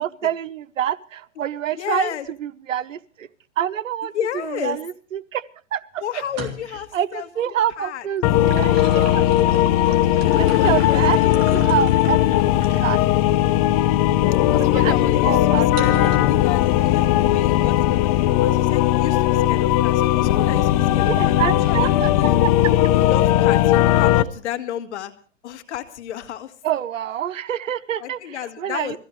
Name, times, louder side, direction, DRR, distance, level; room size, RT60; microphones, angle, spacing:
voice 1, 0.0-2.1 2.4-3.3 3.6-4.1 4.4-5.4 5.7-6.2 6.9-9.2 10.4-12.2 12.8-13.0 14.6-16.1 21.1-22.1 22.4-22.5 26.6-29.0, right 10 dB, 80° right, 14 dB, 0.9 m, -26 dB
voice 2, 1.8-2.3 4.1-4.8 6.0-7.5 7.8-8.1 10.5-11.7 14.5-16.0 16.3-22.3 22.9-25.1 25.4-26.5 28.0-29.0, left 10 dB, 60° left, 8 dB, 2.1 m, -32 dB
sound 1, 6.2-6.9 8.2-13.0 13.6-13.8 15.8-16.4, right 3 dB, 35° right, 3.3 m, -36 dB
sound 2, 8.2-24.2, left 13 dB, 30° left, 0.6 m, -18 dB
22.0 x 15.5 x 3.2 m, 0.41 s
hypercardioid pair, 140°, 38 cm